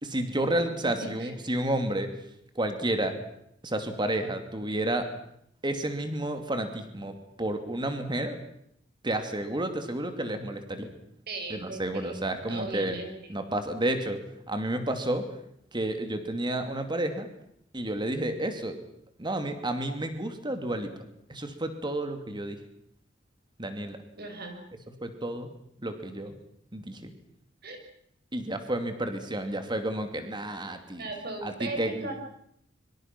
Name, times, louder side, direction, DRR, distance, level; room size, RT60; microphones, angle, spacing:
voice 1, 0.0-2.1 2.5-3.2 3.6-5.1 5.6-8.4 9.0-10.9 11.5-12.9 13.3-14.2 14.5-15.3 15.7-17.3 17.7-18.8 19.2-20.9 21.3-22.6 23.6-24.0 25.0-25.5 25.8-26.4 26.7-27.1 28.3-31.1 31.4-32.1, right 1 dB, 25° right, 7 dB, 2.7 m, -31 dB
voice 2, 0.9-1.3 11.3-12.2 12.5-13.1 24.2-24.6 27.6-27.8 31.0-32.1, right 2 dB, 55° right, 4 dB, 5.6 m, -37 dB
24.5 x 24.0 x 6.0 m, 0.73 s
head